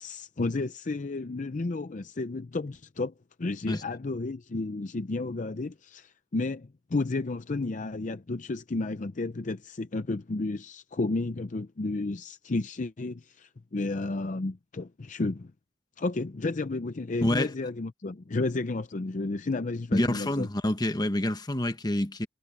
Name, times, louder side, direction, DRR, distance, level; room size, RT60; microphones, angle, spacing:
voice 1, 0.0-3.1 3.4-15.5 16.0-20.5, left 3 dB, 40° left, 0.6 m, -32 dB
voice 2, 17.2-17.5 19.9-22.3, left 1 dB, 20° left, 1.1 m, -27 dB
head